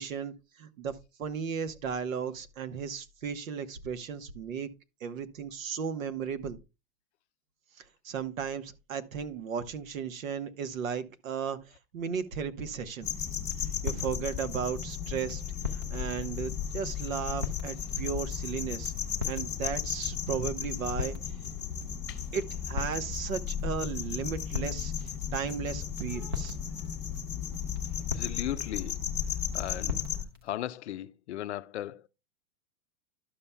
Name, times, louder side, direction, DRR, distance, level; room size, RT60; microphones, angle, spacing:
voice 1, 0.0-4.7 5.0-6.6 7.8-13.1 13.8-15.4 15.7-18.9 19.3-21.2 22.3-26.6 26.8-27.0, right 6 dB, 75° right, 1.1 m, -35 dB
sound 1, 13.0-30.2, left 8 dB, 5° left, 0.9 m, -35 dB
sound 2, 13.4-30.6, left 5 dB, 20° right, 0.4 m, -42 dB
voice 2, 28.0-29.1 29.5-30.1 30.4-32.1, left 12 dB, 55° left, 0.5 m, -37 dB
11.5 x 6.9 x 2.2 m
supercardioid pair, 175°, 41 cm